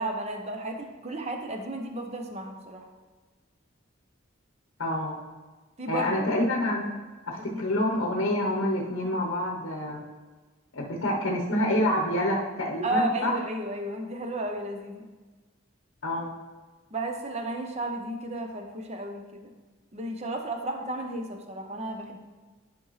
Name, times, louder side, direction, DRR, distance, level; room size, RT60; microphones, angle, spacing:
voice 1, 0.0-2.9 5.8-6.4 7.5-7.7 12.8-15.1 16.9-19.5 19.9-22.2, right 1 dB, 30° right, 4 dB, 0.8 m, -33 dB
voice 2, 4.8-5.2 5.9-6.9 7.3-10.0 10.7-13.3 16.0-16.3, left 1 dB, 70° left, -1 dB, 1.0 m, -27 dB
11.0 x 5.2 x 3.2 m, 1.3 s
head